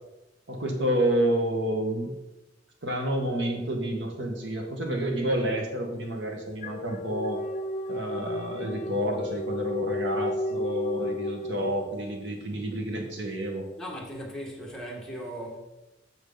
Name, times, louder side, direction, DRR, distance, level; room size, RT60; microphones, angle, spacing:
voice 1, 0.5-2.1 2.8-7.4 7.9-13.7, right 1 dB, 75° right, 1.6 m, -29 dB
sound 1, 6.0-12.3, left 1 dB, 40° left, 0.5 m, -33 dB
voice 2, 13.8-15.6, equal, 5° left, 1.9 m, -38 dB
8.6 x 7.1 x 4.0 m
head